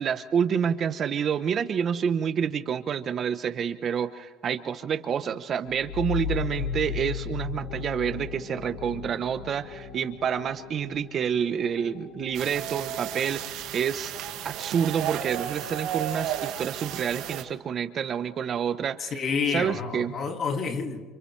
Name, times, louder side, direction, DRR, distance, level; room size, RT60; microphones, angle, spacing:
voice 1, 0.0-14.1 14.4-19.1 19.5-20.2, right 7 dB, 40° right, 11 dB, 0.9 m, -28 dB
sound 1, 5.6-15.0, left 7 dB, 65° left, 2.6 m, -37 dB
sound 2, 12.3-17.4, right 11 dB, 65° right, 2.0 m, -33 dB
voice 2, 19.0-21.1, left 5 dB, 40° left, 5 dB, 2.4 m, -29 dB
28.5 x 28.5 x 3.3 m, 1.4 s
cardioid pair, 130°, 0 cm